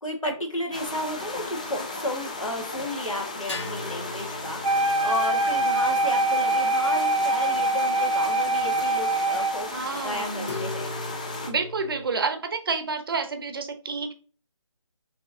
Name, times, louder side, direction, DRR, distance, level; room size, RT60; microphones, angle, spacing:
voice 1, 0.0-9.7 10.0-10.9, left 1 dB, 80° left, 2 dB, 1.7 m, -33 dB
sound 1, 0.7-1.9 3.5-7.2 8.7-8.8 10.4-12.0, left 3 dB, 60° left, 2.1 m, -39 dB
sound 2, 0.7-11.5, left 2 dB, 15° left, 0.3 m, -35 dB
Wind instrument woodwind instrument, 4.6-9.7, right 2 dB, 75° right, 0.5 m, -24 dB
voice 2, 9.7-10.6 11.5-14.1, right 4 dB, 45° right, 7 dB, 0.8 m, -29 dB
6.0 x 3.0 x 2.7 m, 0.39 s
figure-of-eight pair, 150°, 17 cm